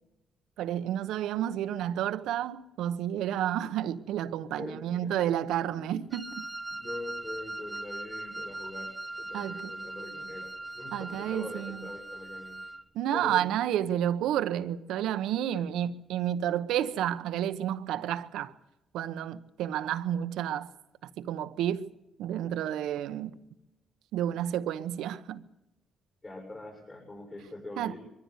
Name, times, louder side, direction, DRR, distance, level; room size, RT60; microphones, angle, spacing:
voice 1, 0.6-6.4 9.3-9.7 10.9-11.9 12.9-18.5 18.9-20.7 21.0-21.9 22.2-23.4 24.1-25.4 27.8-27.9, right 11 dB, 85° right, 1.0 m, -31 dB
voice 2, 4.6-5.1 5.6-6.0 6.7-8.9 9.2-12.6 13.1-13.5 15.5-15.6 26.2-28.0, left 2 dB, 30° left, 6.6 m, -43 dB
Wind instrument woodwind instrument, 6.1-12.8, right 2 dB, 10° right, 0.7 m, -40 dB
23.0 x 14.5 x 8.1 m
cardioid pair, 90°, 0 cm